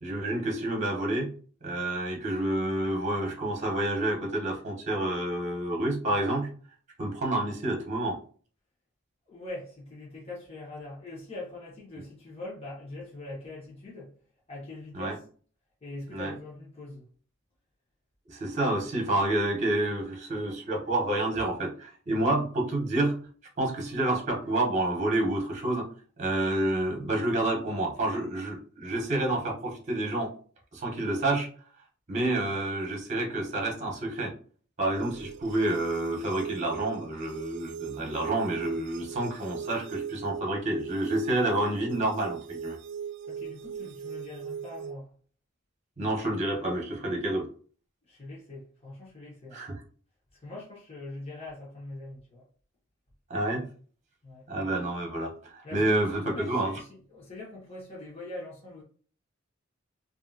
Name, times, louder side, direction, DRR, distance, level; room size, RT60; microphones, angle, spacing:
voice 1, 0.0-1.3 1.6-6.5 7.0-8.2 14.9-15.2 16.1-16.3 18.3-23.2 23.6-25.9 26.2-30.3 30.7-31.5 32.1-34.3 34.8-42.8 46.0-47.5 49.5-49.8 53.3-53.6 54.5-56.8, right 1 dB, 35° right, 1.1 m, -29 dB
voice 2, 9.3-14.1 14.5-15.2 15.8-17.1 43.3-45.1 48.1-49.6 50.4-52.4 54.2-54.5 55.6-58.8, left 2 dB, 30° left, 1.1 m, -42 dB
sound 1, 35.0-45.0, right 7 dB, 60° right, 0.3 m, -40 dB
3.0 x 2.7 x 2.7 m
head